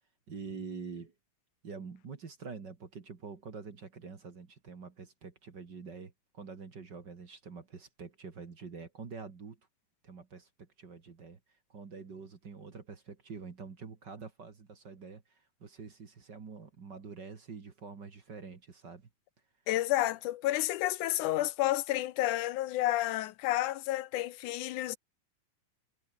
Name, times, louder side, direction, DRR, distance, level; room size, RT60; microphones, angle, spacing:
voice 1, 0.3-1.1 1.6-9.6 10.0-11.4 11.7-19.1, right 5 dB, 40° right, 2.4 m, -46 dB
voice 2, 19.7-25.0, left 15 dB, 80° left, 2.3 m, -30 dB
omnidirectional pair, 3.6 m